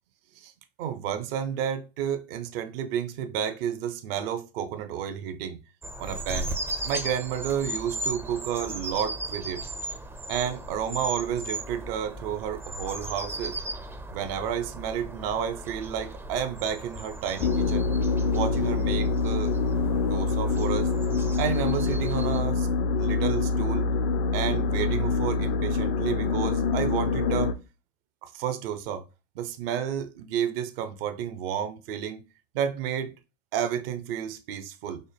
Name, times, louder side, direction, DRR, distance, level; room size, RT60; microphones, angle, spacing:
voice 1, 0.8-5.6 6.0-6.5 6.8-9.6 10.3-13.6 14.1-17.9 18.3-19.6 19.9-20.9 21.4-22.7 23.0-23.9 24.3-27.5 28.2-29.0 29.3-32.2 32.5-33.1 33.5-35.0, right 9 dB, 65° right, 0.7 m, -31 dB
sound 1, 5.8-22.4, right 1 dB, 10° right, 0.4 m, -37 dB
sound 2, 17.4-27.5, left 4 dB, 65° left, 0.6 m, -25 dB
5.3 x 2.0 x 3.3 m
hypercardioid pair, 90°, 31 cm